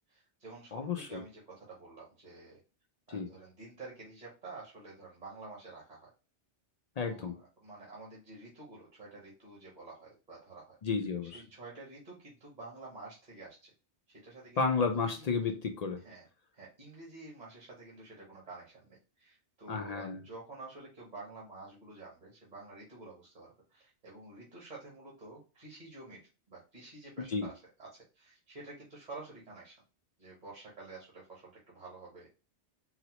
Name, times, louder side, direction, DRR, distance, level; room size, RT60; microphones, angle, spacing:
voice 1, 0.1-2.6 3.1-6.1 7.0-10.8 11.2-13.7 14.1-14.6 14.9-15.3 16.0-16.2 16.5-26.2 26.5-27.5 27.8-29.8 30.2-32.3, right 3 dB, 40° right, -4 dB, 1.1 m, -50 dB
voice 2, 0.7-1.2 3.1-3.3 7.0-7.3 10.8-11.4 14.6-16.0 19.7-20.2 27.3-27.5, left 5 dB, 60° left, 5 dB, 0.4 m, -32 dB
3.9 x 2.0 x 2.9 m, 0.31 s
omnidirectional pair, 1.2 m